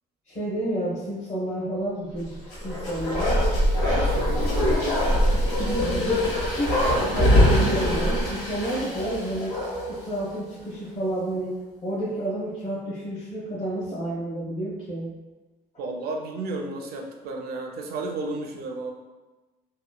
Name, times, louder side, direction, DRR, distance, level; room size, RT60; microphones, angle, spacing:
voice 1, 0.3-3.3 5.3-6.3 6.6-9.6 9.9-11.5 11.8-15.2, right 1 dB, 40° left, -9 dB, 0.9 m, -30 dB
Bark, 2.4-10.0 10.3-10.4, left 1 dB, 75° left, 1.1 m, -23 dB
voice 2, 3.8-5.4 15.8-18.9, right 2 dB, 65° right, 2 dB, 0.5 m, -32 dB
2.9 x 2.1 x 2.2 m, 1.2 s
cardioid pair, 110°, 17 cm